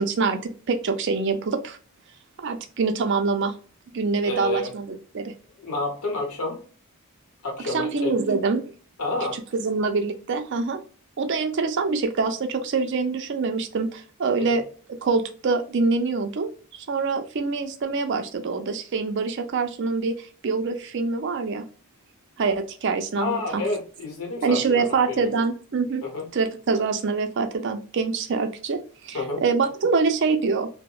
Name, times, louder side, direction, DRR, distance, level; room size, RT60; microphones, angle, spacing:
voice 1, 0.0-1.8 2.4-3.6 3.9-5.3 7.6-8.6 9.3-10.8 11.2-14.6 15.0-16.5 16.9-21.6 22.4-23.6 24.4-26.0 26.3-30.7, right 4 dB, 55° right, 7 dB, 0.4 m, -25 dB
voice 2, 4.2-4.7 5.6-6.6 7.4-8.1 9.0-9.4 14.4-14.6 23.2-25.2 26.0-26.3 29.1-29.4, left 2 dB, 90° left, 1 dB, 0.8 m, -29 dB
2.8 x 2.0 x 2.2 m, 0.40 s
head